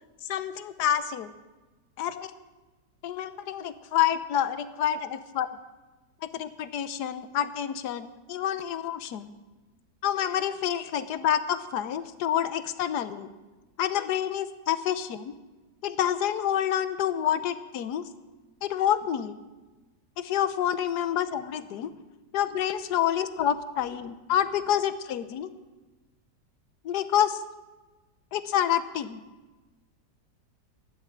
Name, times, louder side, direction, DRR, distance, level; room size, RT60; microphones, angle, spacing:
voice 1, 0.2-1.3 2.0-2.3 3.0-5.5 6.2-9.3 10.0-13.3 13.8-15.4 15.8-18.1 18.6-19.3 20.2-21.9 22.3-25.5 26.8-27.4 28.3-29.2, left 10 dB, 70° left, 13 dB, 1.3 m, -28 dB
13.5 x 11.0 x 7.4 m, 1.2 s
omnidirectional pair, 1.9 m